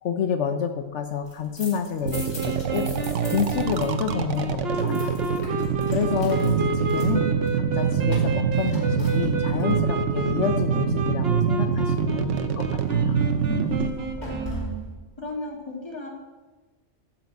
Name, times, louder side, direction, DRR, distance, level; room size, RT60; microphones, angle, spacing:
voice 1, 0.0-2.9 3.3-5.3 5.9-7.2 7.5-13.2, left 7 dB, 75° left, 7 dB, 1.0 m, -29 dB
sound 1, 1.1-3.9 4.1-9.7 12.8-15.0, right 1 dB, 40° left, 3.0 m, -41 dB
sound 2, 2.0-13.9, right 6 dB, 85° right, 1.2 m, -25 dB
sound 3, 2.1-14.7, right 2 dB, 60° right, 1.2 m, -32 dB
voice 2, 13.4-14.7 15.2-16.1, equal, 20° left, -1 dB, 2.4 m, -34 dB
14.0 x 5.9 x 7.7 m, 1.2 s
omnidirectional pair, 1.2 m